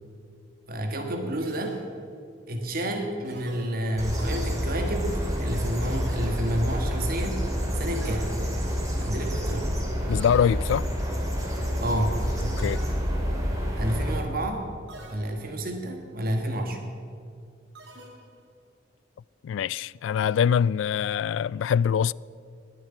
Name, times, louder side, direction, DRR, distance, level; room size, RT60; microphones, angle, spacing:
voice 1, 0.7-1.8 2.5-7.4 7.7-8.3 9.0-9.7 11.8-12.2 13.8-14.6 15.1-16.8, right 1 dB, 50° right, 1.5 m, -29 dB
sound 1, 1.4-2.3 3.2-4.3 5.8-6.7 7.9-8.9 10.1-10.9 12.6-13.5 14.9-15.7 17.8-18.6, right 1 dB, 70° right, 2.7 m, -49 dB
sound 2, 4.0-14.2, equal, 20° right, 2.9 m, -28 dB
voice 2, 10.1-10.9 12.6-12.8 19.4-22.1, left 8 dB, 85° left, 0.3 m, -24 dB
20.5 x 7.6 x 8.6 m
head